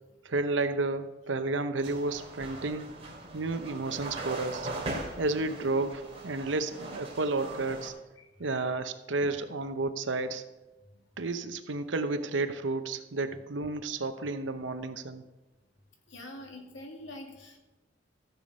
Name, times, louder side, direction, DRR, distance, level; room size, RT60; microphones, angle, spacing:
voice 1, 0.2-2.9 3.3-4.7 5.2-7.9 8.4-10.4 11.2-15.2, right 3 dB, 70° right, 9 dB, 0.8 m, -31 dB
sound 1, 1.8-7.9, right 2 dB, 30° right, 2.5 m, -40 dB
voice 2, 8.2-8.7 16.1-17.6, left 1 dB, 75° left, 2 dB, 2.1 m, -45 dB
14.5 x 7.1 x 5.3 m, 1.1 s
head